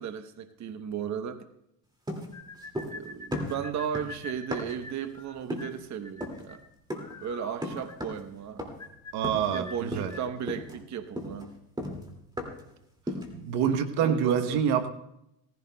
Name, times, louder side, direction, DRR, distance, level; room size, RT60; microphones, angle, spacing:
voice 1, 0.0-1.4 2.8-6.6 7.2-8.8 9.5-11.5 14.0-14.6, right 8 dB, 45° right, 9 dB, 1.0 m, -35 dB
sound 1, 2.1-3.0 3.3-4.9 5.5-5.8 6.2-6.5 6.9-7.2 7.6-8.3 8.6-8.9 9.2-9.6 9.9-10.2 10.5-12.7 13.1-13.4, left 1 dB, 10° right, 2.2 m, -36 dB
sound 2, 2.3-10.3, left 3 dB, 10° left, 2.4 m, -46 dB
voice 2, 9.1-10.1 13.3-14.9, right 8 dB, 80° right, 9 dB, 1.1 m, -26 dB
18.0 x 15.0 x 2.2 m, 0.81 s
cardioid pair, 105°, 39 cm